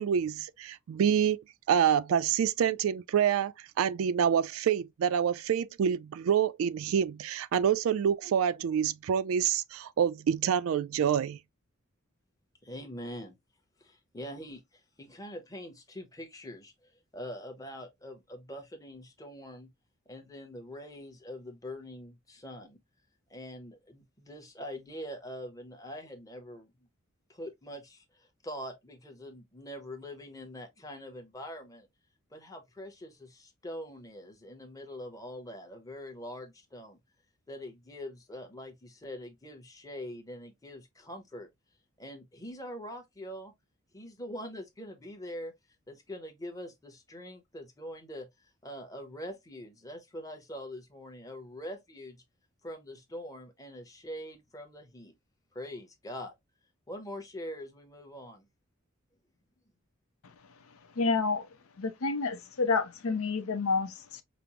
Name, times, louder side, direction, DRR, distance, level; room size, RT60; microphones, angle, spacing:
voice 1, 0.0-11.4, right 8 dB, 70° right, 0.3 m, -27 dB
voice 2, 12.6-13.4 13.8-19.7 20.1-22.8 23.3-26.7 27.3-31.9 32.3-37.0 37.5-41.5 42.0-43.5 43.9-45.5 45.9-52.2 52.6-55.1 55.5-56.4 56.9-58.5, equal, 15° left, 0.8 m, -43 dB
voice 3, 61.0-61.5 61.8-64.2, left 4 dB, 80° left, 0.6 m, -29 dB
5.1 x 2.0 x 2.9 m
head